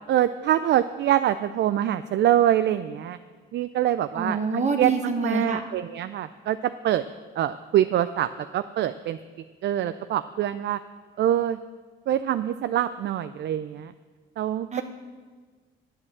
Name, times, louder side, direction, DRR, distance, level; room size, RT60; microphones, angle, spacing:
voice 1, 0.1-3.2 3.5-4.4 4.8-4.9 5.2-6.6 6.8-7.0 7.4-8.3 8.5-9.2 9.6-10.8 11.2-11.6 12.1-13.9 14.4-14.8, right 11 dB, 65° right, 11 dB, 0.4 m, -24 dB
voice 2, 4.1-5.6 14.7-14.8, right 4 dB, 35° right, 4 dB, 1.0 m, -26 dB
9.8 x 8.6 x 7.1 m, 1.5 s
cardioid pair, 90°, 20 cm